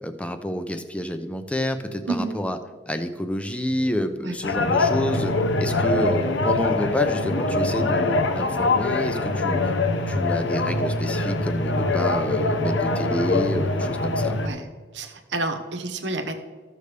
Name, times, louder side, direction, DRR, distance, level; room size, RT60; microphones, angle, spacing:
voice 1, 0.0-2.6 2.9-9.7 10.1-14.4, equal, 5° left, 8 dB, 0.5 m, -28 dB
voice 2, 2.1-2.4 4.2-4.4 14.4-14.7 14.9-16.4, right 2 dB, 80° right, 6 dB, 1.0 m, -29 dB
sound 1, 4.4-14.5, left 2 dB, 90° left, 0.8 m, -23 dB
sound 2, 5.1-9.3, right 1 dB, 55° left, 1.2 m, -40 dB
14.5 x 6.7 x 3.3 m, 1.5 s
head